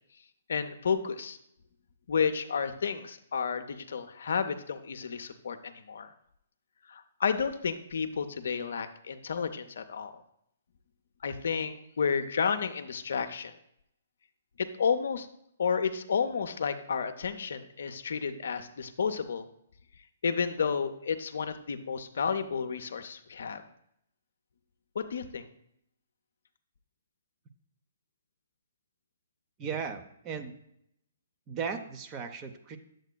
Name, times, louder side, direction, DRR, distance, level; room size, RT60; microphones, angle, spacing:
voice 1, 0.5-1.4 2.1-6.1 6.9-10.2 11.2-13.5 14.6-15.3 15.6-19.5 20.2-23.6 24.9-25.4, left 6 dB, 70° left, 8 dB, 0.5 m, -31 dB
voice 2, 29.6-30.5 31.5-32.8, right 6 dB, 25° right, 6 dB, 0.6 m, -36 dB
8.0 x 7.6 x 2.2 m, 0.74 s
hypercardioid pair, 130°, 0 cm